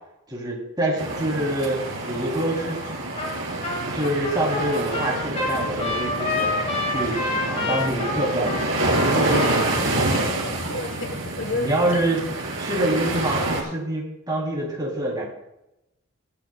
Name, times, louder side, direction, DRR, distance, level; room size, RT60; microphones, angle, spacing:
voice 1, 0.3-2.8 3.9-6.5 6.9-8.6 9.1-10.3 11.5-12.2 12.6-15.2, right 1 dB, 20° right, -3 dB, 3.3 m, -26 dB
sound 1, 1.0-13.6, right 2 dB, 65° right, 3.1 m, -27 dB
Trumpet, 3.2-3.4 3.6-9.8, left 3 dB, 30° left, 2.1 m, -28 dB
voice 2, 9.0-12.0, left 2 dB, 60° left, 8 dB, 1.4 m, -32 dB
16.5 x 12.5 x 2.4 m, 0.87 s
head